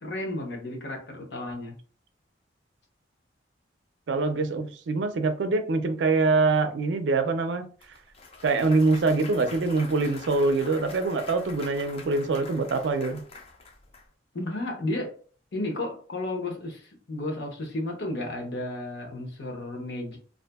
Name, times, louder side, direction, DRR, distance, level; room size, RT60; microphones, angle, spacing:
voice 1, 0.0-1.7 14.3-15.2 15.5-20.2, left 1 dB, 65° left, 0.7 m, -33 dB
voice 2, 4.1-7.7 8.4-13.2, right 3 dB, 70° right, 0.4 m, -24 dB
Clapping / Cheering / Applause, 7.8-14.0, left 3 dB, 30° left, 0.3 m, -45 dB
2.6 x 2.5 x 2.3 m
head